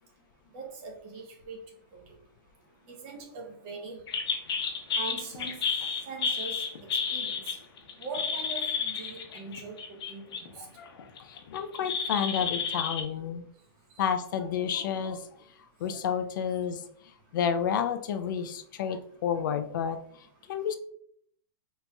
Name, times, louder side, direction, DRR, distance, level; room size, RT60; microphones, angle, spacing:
voice 1, 0.5-1.6 1.9-2.1 2.9-4.0 4.9-5.6 6.1-6.6 7.1-7.6 8.0-10.7 14.0-14.1, right 4 dB, 30° right, 2 dB, 0.7 m, -41 dB
sound 1, 4.1-10.5 10.9-13.0, left 6 dB, 75° left, 0.8 m, -31 dB
voice 2, 10.6-13.5 14.0-15.3 15.8-16.8 17.3-20.0 20.5-20.8, left 8 dB, 50° left, 8 dB, 0.4 m, -30 dB
4.0 x 2.8 x 2.2 m, 0.65 s
hypercardioid pair, 160°, 13 cm